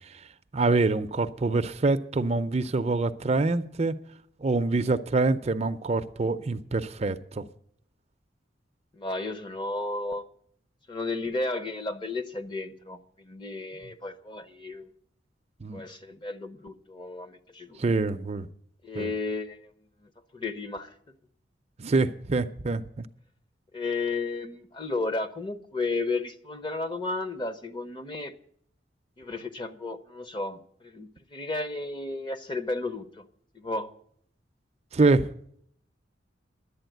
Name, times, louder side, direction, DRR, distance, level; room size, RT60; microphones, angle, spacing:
voice 1, 0.5-3.9 4.4-7.5 15.6-15.8 17.8-18.5 18.9-19.1 21.8-23.1 34.9-35.2, right 3 dB, 35° right, 0.5 m, -25 dB
voice 2, 8.9-10.2 10.9-14.9 15.7-17.8 18.8-19.7 20.0-20.9 23.7-28.3 29.2-33.3 33.5-33.9, left 3 dB, 25° left, 0.8 m, -33 dB
11.5 x 8.5 x 9.0 m
head